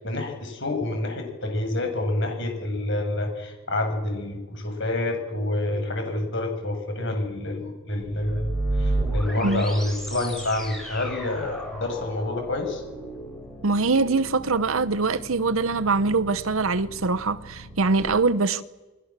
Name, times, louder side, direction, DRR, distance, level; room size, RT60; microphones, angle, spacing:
voice 1, 0.0-12.8, left 1 dB, 60° left, 7.0 m, -28 dB
sound 1, 8.0-18.0, right 1 dB, ahead, 7.4 m, -33 dB
voice 2, 13.6-18.6, right 3 dB, 75° right, 0.9 m, -23 dB
28.5 x 20.0 x 7.5 m
head